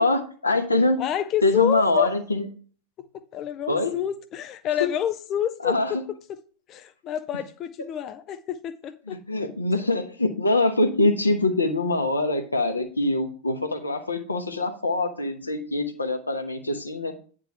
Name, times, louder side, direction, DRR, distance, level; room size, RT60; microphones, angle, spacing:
voice 1, 0.0-1.0 1.4-2.5 3.7-4.0 4.8-4.9 5.6-6.0 9.1-17.1, left 2 dB, 80° left, 1.0 m, -24 dB
voice 2, 1.0-2.1 3.0-6.0 6.7-9.2, left 10 dB, 35° left, 0.5 m, -29 dB
9.2 x 3.7 x 5.8 m
figure-of-eight pair, 90°, 0 cm